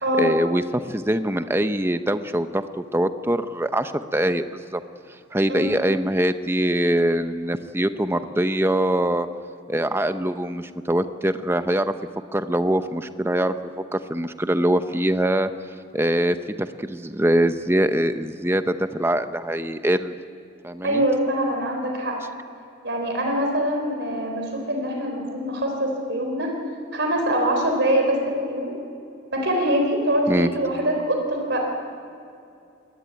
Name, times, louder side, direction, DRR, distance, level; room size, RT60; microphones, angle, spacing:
voice 1, 0.2-2.7 2.9-4.8 5.3-9.3 9.7-11.9 12.3-15.5 15.9-20.2 20.6-21.0 30.3-30.5, right 1 dB, 10° right, 10 dB, 0.7 m, -23 dB
voice 2, 20.8-22.2 22.8-26.5 26.9-28.7 29.3-31.6, equal, 60° right, 2 dB, 3.8 m, -24 dB
23.5 x 19.5 x 9.1 m, 2.5 s
head